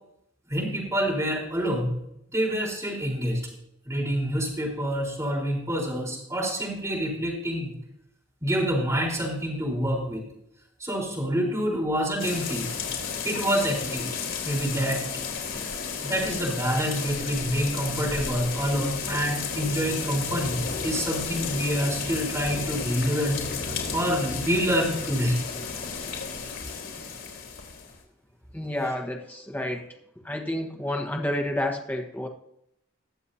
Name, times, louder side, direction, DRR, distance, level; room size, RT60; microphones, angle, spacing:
voice 1, 0.5-1.9 2.3-3.5 3.9-7.7 8.4-10.2 10.8-12.7 13.2-14.1 14.4-15.0 16.0-23.4 23.9-25.4, equal, 15° right, -4 dB, 4.0 m, -27 dB
sound 1, 12.2-28.0, left 5 dB, 85° left, 3.1 m, -33 dB
voice 2, 28.5-29.9 30.2-32.3, left 1 dB, 10° left, 3 dB, 1.3 m, -30 dB
21.0 x 7.3 x 2.8 m, 0.77 s
head